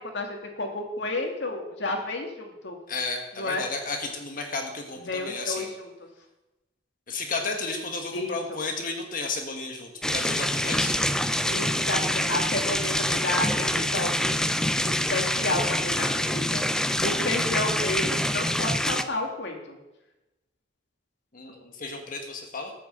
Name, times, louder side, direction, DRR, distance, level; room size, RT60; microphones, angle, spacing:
voice 1, 0.0-2.8 3.4-3.7 5.0-5.9 8.1-8.6 11.5-14.4 14.9-16.6 16.9-19.8, left 2 dB, 70° left, 2 dB, 2.4 m, -31 dB
voice 2, 2.9-5.7 7.1-10.9 21.3-22.7, left 3 dB, 50° left, 3 dB, 1.5 m, -33 dB
sound 1, 10.0-19.0, left 1 dB, 5° left, 0.6 m, -26 dB
13.0 x 6.9 x 8.0 m, 1.0 s
head